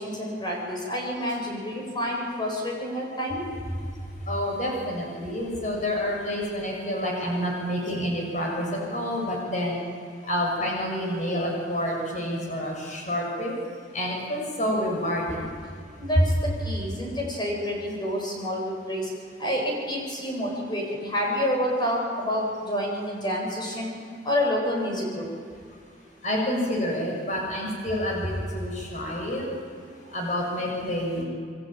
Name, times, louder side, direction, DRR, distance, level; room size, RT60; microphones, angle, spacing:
voice 1, 0.0-3.4 16.0-19.0 19.4-23.9 24.2-25.2, equal, 25° left, -1 dB, 7.7 m, -28 dB
voice 2, 4.3-9.8 10.2-13.5 13.9-15.5 26.2-29.5 30.1-31.2, equal, 40° left, -1 dB, 6.8 m, -28 dB
28.5 x 22.5 x 9.1 m, 2.2 s
head